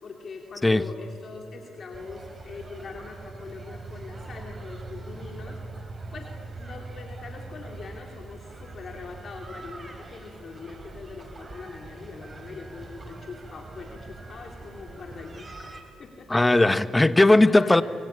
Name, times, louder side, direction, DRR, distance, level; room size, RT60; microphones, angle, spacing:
voice 1, 0.0-5.6 6.1-15.7 16.0-16.7 17.5-17.8, left 4 dB, 50° left, 2 dB, 2.9 m, -42 dB
sound 1, 1.9-15.8, right 3 dB, 30° right, 3.7 m, -42 dB
voice 2, 16.3-17.8, left 2 dB, 15° left, 14 dB, 1.0 m, -18 dB
24.0 x 24.0 x 8.8 m, 2.6 s
cardioid pair, 90°, 0 cm